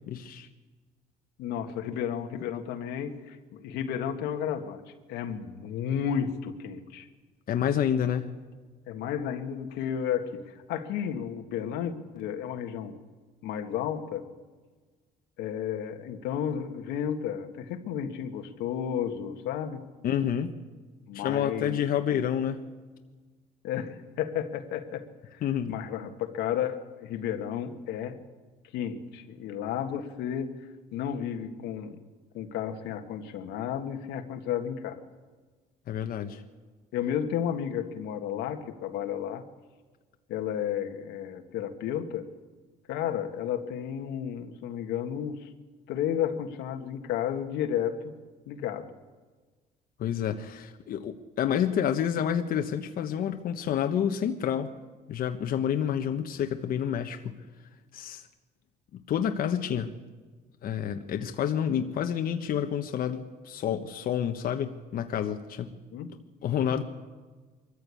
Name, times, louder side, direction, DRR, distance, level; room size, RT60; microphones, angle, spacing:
voice 1, 0.1-0.5 7.5-8.3 20.0-20.5 21.1-22.6 25.4-25.8 35.9-36.4 50.0-54.7 55.1-57.3 57.9-58.2 59.1-59.9 60.6-65.7 66.4-66.8, left 9 dB, 60° left, 6 dB, 1.3 m, -29 dB
voice 2, 1.4-4.8 5.1-7.1 8.9-13.0 13.4-14.3 15.4-19.8 21.1-21.8 23.6-25.4 25.7-28.2 28.7-30.5 30.9-32.0 32.3-35.1 36.9-39.5 40.3-42.3 42.9-45.5 45.9-48.1 48.5-48.9 65.9-66.1, left 9 dB, 90° left, 6 dB, 1.8 m, -32 dB
23.0 x 14.5 x 8.5 m, 1.4 s
cardioid pair, 110°, 17 cm